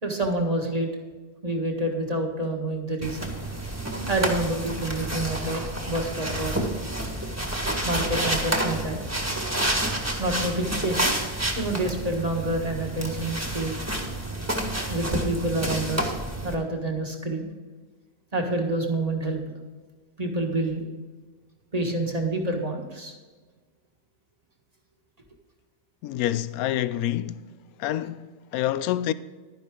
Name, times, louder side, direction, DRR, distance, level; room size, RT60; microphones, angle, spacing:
voice 1, 0.0-0.9 1.4-3.3 4.1-6.7 7.8-9.0 10.2-11.2 11.6-13.8 14.9-16.1 16.4-17.5 18.3-19.5 20.2-20.8 21.7-23.1, right 1 dB, 25° right, 1.6 m, -28 dB
sound 1, 3.0-16.6, right 1 dB, 10° right, 1.6 m, -29 dB
voice 2, 26.0-27.5 27.8-29.1, left 12 dB, 75° left, 1.0 m, -27 dB
12.0 x 10.5 x 3.8 m
omnidirectional pair, 1.6 m